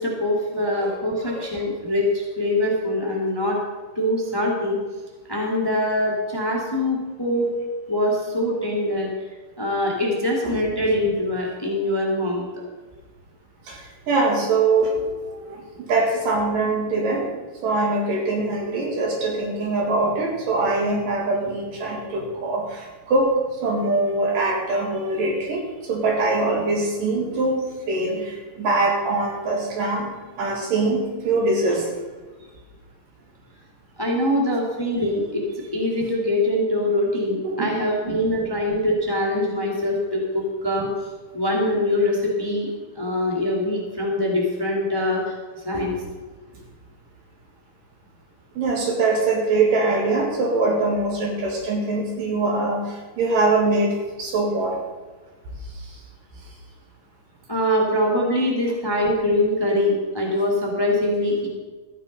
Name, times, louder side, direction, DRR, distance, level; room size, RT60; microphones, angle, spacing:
voice 1, 0.0-3.6 3.9-4.8 5.3-7.5 7.9-9.1 9.6-12.4 34.0-35.4 35.7-40.9 41.3-42.7 42.9-45.4 45.6-45.9 57.5-61.5, left 1 dB, 10° left, -1 dB, 1.5 m, -23 dB
voice 2, 13.7-17.3 17.6-30.1 30.4-31.9 37.4-37.7 38.1-38.2 45.7-45.8 46.5-46.6 48.6-54.8 55.7-56.0, right 2 dB, 85° right, 0 dB, 4.0 m, -23 dB
13.5 x 9.1 x 5.4 m, 1.3 s
omnidirectional pair, 3.8 m